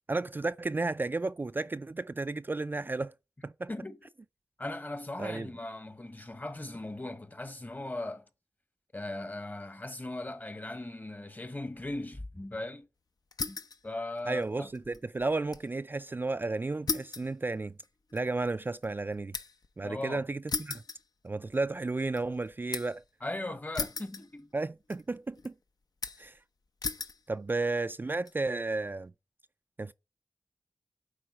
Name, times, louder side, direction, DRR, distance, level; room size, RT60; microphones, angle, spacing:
voice 1, 0.1-3.1 3.4-3.7 5.2-5.5 14.3-17.7 18.1-19.4 19.8-20.8 21.2-23.0 24.5-25.5 26.2-26.4 27.3-29.1 29.8-29.9, right 3 dB, 30° right, 0.3 m, -33 dB
voice 2, 4.6-8.2 8.9-12.9 13.4-13.6 13.8-14.7 19.8-20.2 23.2-24.5, left 2 dB, 25° left, 1.1 m, -38 dB
sound 1, 13.3-13.8 14.2-15.7 16.0-16.1 16.9-19.7 20.5-21.6 22.0-23.0 23.7-24.6 24.9-25.5 26.0-26.4 26.8-27.2 27.9-28.3, left 4 dB, 70° left, 0.8 m, -37 dB
9.1 x 3.8 x 5.5 m
cardioid pair, 45°, 7 cm